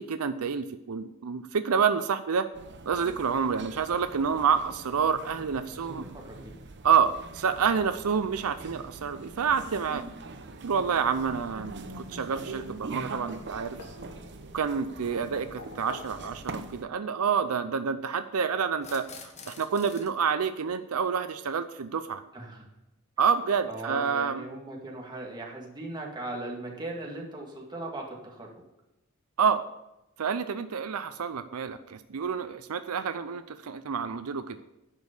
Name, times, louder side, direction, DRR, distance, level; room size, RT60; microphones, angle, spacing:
voice 1, 0.0-2.5 2.9-6.1 6.8-10.1 10.6-13.8 14.5-22.2 23.2-24.4 29.4-29.6 30.2-34.6, right 6 dB, 80° right, 11 dB, 0.5 m, -28 dB
sound 1, 2.5-16.8, right 2 dB, 55° right, 0.8 m, -43 dB
voice 2, 5.7-6.5 22.3-22.7 23.7-28.5, right 2 dB, 20° right, -2 dB, 2.1 m, -39 dB
sound 2, 12.5-13.1 13.4-14.5 15.0-16.7 17.9-18.0 19.5-19.6 20.0-20.1, left 1 dB, 75° left, 1.5 m, -47 dB
sound 3, 14.5-14.6 16.0-16.1 18.7-20.1, left 5 dB, 30° left, 1.2 m, -47 dB
10.5 x 5.3 x 8.2 m, 0.92 s
head